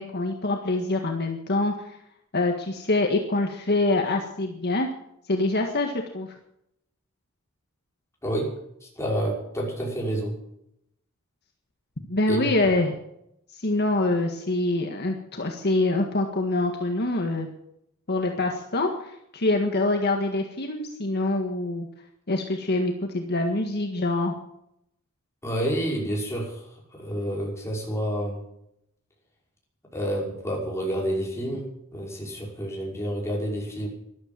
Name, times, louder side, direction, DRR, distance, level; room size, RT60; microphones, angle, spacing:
voice 1, 0.0-2.0 2.3-4.9 5.3-6.3 12.1-13.0 13.5-17.5 18.1-21.9 22.3-24.4, left 2 dB, 50° left, 3 dB, 1.7 m, -25 dB
voice 2, 8.2-8.5 8.8-10.3 12.3-12.7 25.4-26.6 26.9-28.4 29.9-31.7 31.9-33.9, right 1 dB, 15° left, -2 dB, 5.6 m, -29 dB
13.5 x 12.5 x 7.7 m, 0.79 s
head